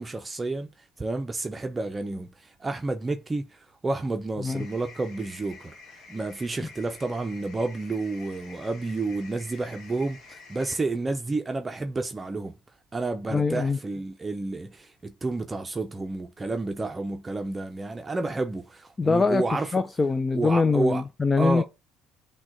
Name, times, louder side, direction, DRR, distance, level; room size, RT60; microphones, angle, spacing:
voice 1, 0.0-12.6 12.9-19.7 20.3-21.0 21.4-21.6, right 3 dB, 25° right, 0.6 m, -30 dB
sound 1, 4.5-10.8, left 4 dB, 65° left, 1.3 m, -48 dB
voice 2, 13.3-13.8 19.0-19.4 19.7-21.6, left 4 dB, 25° left, 0.4 m, -23 dB
6.0 x 2.3 x 3.7 m
hypercardioid pair, 60°, 0 cm